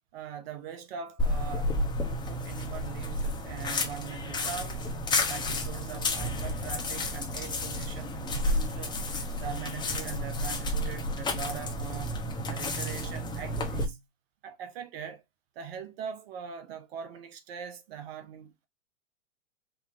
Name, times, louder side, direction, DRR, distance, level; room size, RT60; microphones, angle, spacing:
voice 1, 0.1-1.8 2.0-4.9 5.3-9.0 9.4-12.2 12.5-14.0 14.4-15.2 15.5-18.7, right 8 dB, 50° right, 1.1 m, -41 dB
sound 1, 1.2-13.9, left 1 dB, 10° left, 0.8 m, -31 dB
4.7 x 2.3 x 3.5 m
hypercardioid pair, 110°, 39 cm